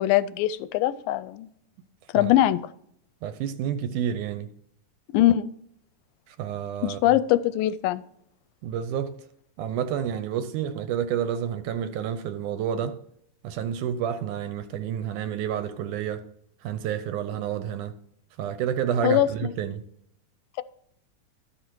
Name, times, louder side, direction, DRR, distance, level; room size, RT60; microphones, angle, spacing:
voice 1, 0.0-1.5 2.1-2.6 5.1-5.5 6.8-8.0 19.0-19.3, left 13 dB, 90° left, 2.3 m, -22 dB
voice 2, 3.2-4.5 6.3-7.1 8.6-9.2 9.6-13.0 13.4-16.2 16.6-18.0 18.4-19.9, right 9 dB, 75° right, 2.0 m, -29 dB
13.0 x 6.4 x 4.5 m
omnidirectional pair, 3.9 m